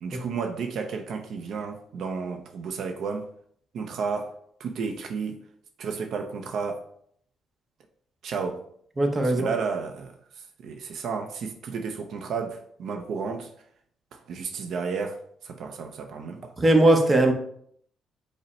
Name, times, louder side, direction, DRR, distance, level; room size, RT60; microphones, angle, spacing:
voice 1, 0.0-3.3 3.7-4.3 4.6-5.4 5.8-6.8 8.2-8.6 9.2-10.1 10.6-13.5 14.1-15.2 15.4-16.5, right 5 dB, 65° right, 0.4 m, -32 dB
voice 2, 9.0-9.5 16.6-17.3, right 1 dB, 20° right, 0.7 m, -19 dB
5.2 x 2.0 x 4.1 m
cardioid pair, 115°, 0 cm